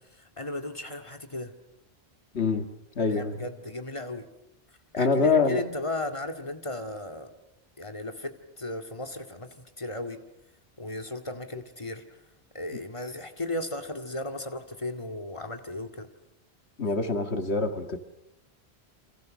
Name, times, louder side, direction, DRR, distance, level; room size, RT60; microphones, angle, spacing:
voice 1, 0.2-1.5 3.1-4.3 4.9-7.3 7.8-10.2 10.8-12.0 12.5-16.1, left 1 dB, 30° left, 2.2 m, -35 dB
voice 2, 2.3-2.7 3.0-3.4 5.0-5.6 16.8-18.0, left 4 dB, 90° left, 2.0 m, -25 dB
29.0 x 26.5 x 6.4 m
omnidirectional pair, 1.1 m